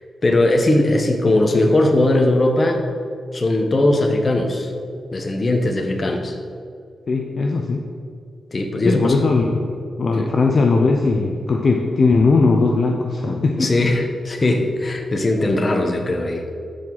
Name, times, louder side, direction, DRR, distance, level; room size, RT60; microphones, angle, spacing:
voice 1, 0.2-2.8 3.3-4.7 5.1-6.3 8.5-9.2 10.2-10.3 13.6-16.4, left 2 dB, 30° left, 3 dB, 1.1 m, -19 dB
voice 2, 7.1-7.8 8.8-9.7 10.0-13.7, left 3 dB, 45° left, 1 dB, 0.7 m, -18 dB
13.0 x 4.8 x 4.0 m, 2.3 s
wide cardioid pair, 115°, 0 cm